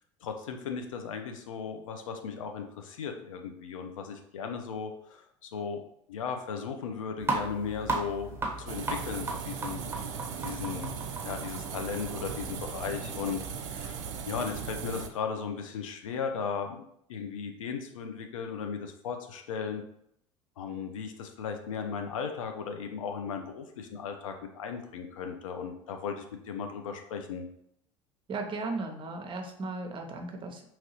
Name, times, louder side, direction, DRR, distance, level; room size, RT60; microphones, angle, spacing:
voice 1, 0.2-5.8 6.1-9.9 10.4-10.9 11.2-19.8 20.6-27.5, left 6 dB, 80° left, 5 dB, 0.4 m, -36 dB
sound 1, 7.2-13.3, right 3 dB, 15° right, 1.0 m, -36 dB
sound 2, 8.7-15.1, right 7 dB, 70° right, 0.4 m, -38 dB
voice 2, 28.3-30.6, right 3 dB, 30° right, 4 dB, 0.6 m, -36 dB
2.9 x 2.7 x 2.9 m, 0.72 s
hypercardioid pair, 70°, 17 cm